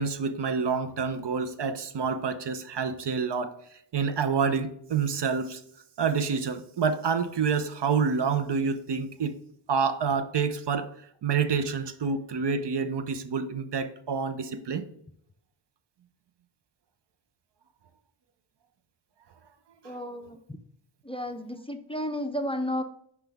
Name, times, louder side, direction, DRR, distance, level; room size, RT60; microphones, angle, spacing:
voice 1, 0.0-3.5 3.9-5.6 6.0-9.4 9.7-10.9 11.2-14.9 19.8-19.9, right 5 dB, 60° right, 0.7 m, -28 dB
voice 2, 19.8-20.6 21.0-22.8, left 1 dB, 10° left, 0.5 m, -32 dB
5.9 x 4.6 x 3.5 m
cardioid pair, 60°, 48 cm